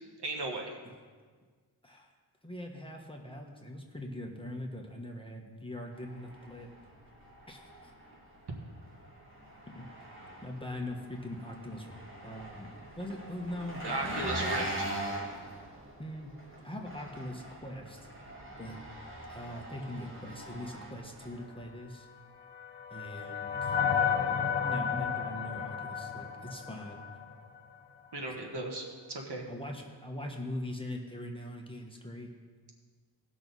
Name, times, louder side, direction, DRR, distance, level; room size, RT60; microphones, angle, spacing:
voice 1, 0.2-0.7 13.8-14.9 28.1-29.4, right 2 dB, 70° right, 1 dB, 1.7 m, -36 dB
voice 2, 2.4-6.7 7.5-7.6 9.7-9.8 10.4-12.7 13.0-14.5 16.0-16.3 16.6-18.1 18.6-18.8 19.3-22.1 22.9-23.8 24.6-27.1 28.3-28.4 29.5-32.3, left 1 dB, 10° left, 1 dB, 1.4 m, -41 dB
Engine, 5.9-21.7, right 1 dB, 30° right, 2.3 m, -42 dB
sound 1, 22.1-27.4, left 7 dB, 75° left, 1.0 m, -32 dB
18.0 x 6.2 x 4.1 m, 1.5 s
wide cardioid pair, 90°, 42 cm